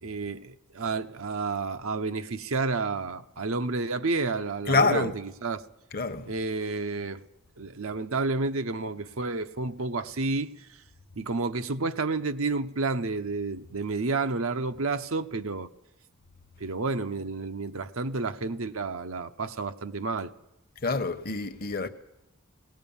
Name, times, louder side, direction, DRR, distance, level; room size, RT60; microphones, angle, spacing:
voice 1, 0.0-5.6 6.3-7.2 7.6-10.7 11.1-15.7 16.6-20.3, right 3 dB, 75° right, 0.9 m, -30 dB
voice 2, 4.7-5.1 5.9-6.3 20.8-21.9, left 3 dB, 45° left, 0.9 m, -26 dB
20.5 x 17.5 x 7.2 m
head